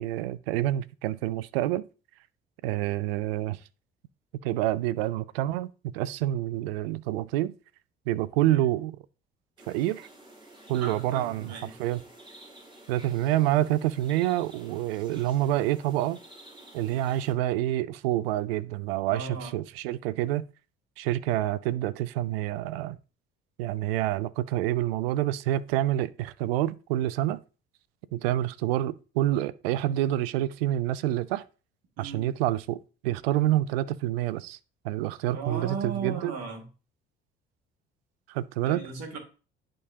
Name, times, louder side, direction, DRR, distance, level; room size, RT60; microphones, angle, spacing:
voice 1, 0.0-1.8 2.6-3.6 4.4-7.5 8.1-9.0 9.7-10.1 10.7-11.5 11.8-12.0 12.9-16.2 16.7-20.5 21.0-23.0 23.6-27.4 28.1-31.4 32.0-34.6 34.8-36.3 38.3-38.8, right 14 dB, 75° right, 0.5 m, -27 dB
sound 1, 9.6-17.3, right 1 dB, 15° right, 2.5 m, -51 dB
voice 2, 10.7-11.8 19.1-19.5 32.0-32.3 35.3-36.7 38.6-39.2, right 5 dB, 60° right, 2.0 m, -36 dB
10.5 x 3.7 x 2.8 m
hypercardioid pair, 55°, 29 cm